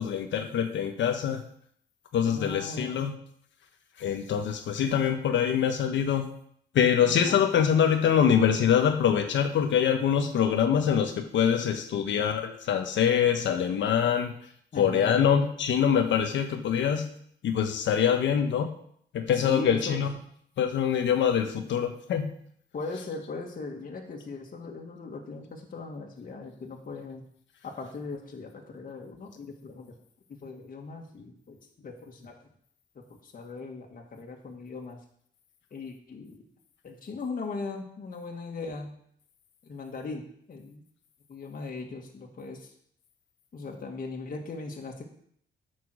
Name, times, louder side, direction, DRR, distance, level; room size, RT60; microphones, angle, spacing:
voice 1, 0.0-1.4 2.1-3.1 4.0-6.3 6.7-14.3 14.8-17.1 17.4-18.7 19.1-20.1 20.6-22.3, left 8 dB, 70° left, 6 dB, 1.1 m, -24 dB
voice 2, 2.3-3.0 7.0-7.4 14.7-15.2 19.4-20.0 22.7-27.2 27.6-29.9 30.3-31.6 31.8-32.3 33.0-35.0 35.7-36.4 36.8-38.9 39.6-40.8 41.3-42.7 43.5-45.1, left 3 dB, 45° left, 0 dB, 2.0 m, -38 dB
9.5 x 6.1 x 6.4 m, 0.65 s
cardioid pair, 90°, 20 cm